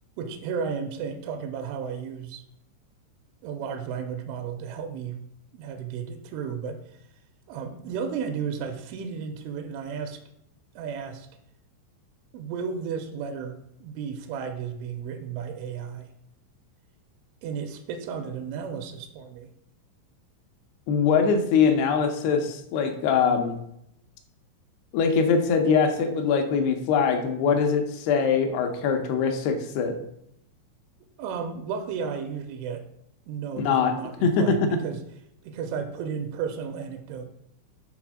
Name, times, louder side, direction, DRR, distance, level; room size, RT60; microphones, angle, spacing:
voice 1, 0.2-2.4 3.4-5.2 5.5-6.8 7.5-10.2 10.8-11.3 12.3-16.1 17.4-19.5 31.2-32.9 33.3-35.0 35.4-37.3, right 6 dB, 85° right, 7 dB, 3.2 m, -33 dB
voice 2, 20.9-23.6 24.9-29.9 33.7-33.9 34.2-34.8, left 5 dB, 80° left, 5 dB, 2.4 m, -22 dB
7.1 x 3.9 x 6.2 m, 0.76 s
omnidirectional pair, 5.5 m